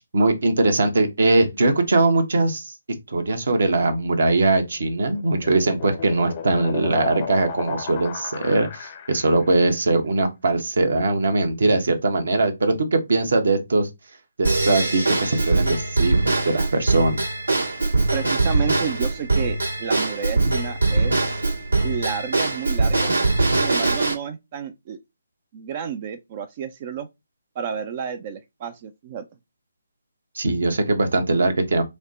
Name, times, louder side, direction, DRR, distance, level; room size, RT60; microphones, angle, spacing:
voice 1, 0.1-2.7 3.1-13.9 14.4-17.2 30.3-31.8, right 2 dB, 60° right, 1.0 m, -21 dB
sound 1, 4.8-9.6, left 8 dB, 30° left, 0.6 m, -34 dB
Drum kit / Drum / Bell, 14.4-24.1, right 3 dB, 75° right, 1.7 m, -22 dB
voice 2, 18.1-21.4 21.8-23.1 23.5-25.0 25.5-27.1 27.6-29.3, right 7 dB, 30° right, 0.4 m, -31 dB
4.8 x 2.1 x 4.0 m
figure-of-eight pair, 140°, 0 cm